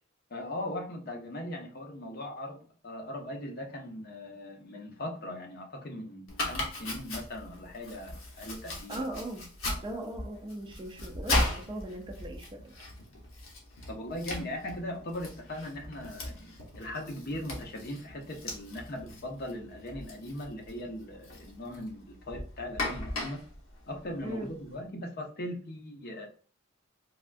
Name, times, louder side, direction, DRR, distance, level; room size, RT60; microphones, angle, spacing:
voice 1, 0.3-9.0 13.9-23.4 23.9-26.3, left 1 dB, 45° left, 0.6 m, -39 dB
Domestic sounds home sounds, 6.3-24.7, left 1 dB, 65° left, 0.9 m, -38 dB
voice 2, 8.9-9.5 9.8-12.7 24.2-24.5, right 1 dB, 20° right, 0.4 m, -39 dB
3.4 x 2.3 x 2.4 m
head